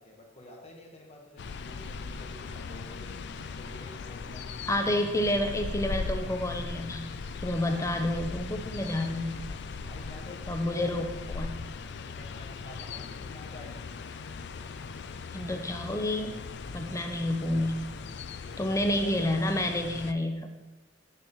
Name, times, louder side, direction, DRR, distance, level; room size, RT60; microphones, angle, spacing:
voice 1, 0.0-3.2 3.5-4.5 7.6-7.9 9.7-10.4 10.7-10.9 12.1-13.8 16.8-17.2 18.3-18.6, left 1 dB, 35° left, 0 dB, 1.5 m, -49 dB
sound 1, 1.4-20.1, left 4 dB, 65° left, 0.4 m, -39 dB
voice 2, 4.7-7.1 7.4-9.6 10.5-11.5 15.3-16.4 16.7-17.8 18.6-20.5, left 1 dB, 15° left, 5 dB, 0.7 m, -29 dB
7.8 x 6.6 x 3.7 m, 1.1 s
head